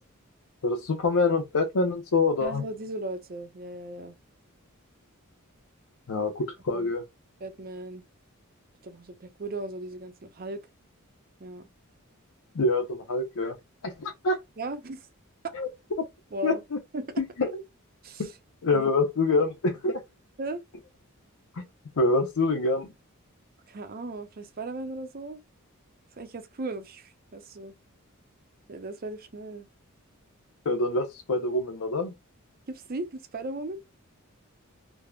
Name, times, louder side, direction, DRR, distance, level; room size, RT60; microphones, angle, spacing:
voice 1, 0.6-2.6 6.1-7.0 12.5-13.5 13.8-14.4 15.5-15.7 16.4-16.5 17.2-17.6 18.2-18.3 18.6-20.0 21.6-21.7 22.0-22.9 30.7-32.1, left 3 dB, 85° left, 0.6 m, -26 dB
voice 2, 2.4-4.1 6.7-6.9 7.4-8.0 8.8-10.6 11.4-11.7 14.6-15.1 16.3-16.6 16.9-17.2 18.0-18.3 18.7-18.9 20.4-20.6 23.7-25.4 26.2-27.7 28.7-29.7 32.7-33.8, right 2 dB, 40° right, 0.5 m, -37 dB
3.5 x 2.0 x 2.2 m
head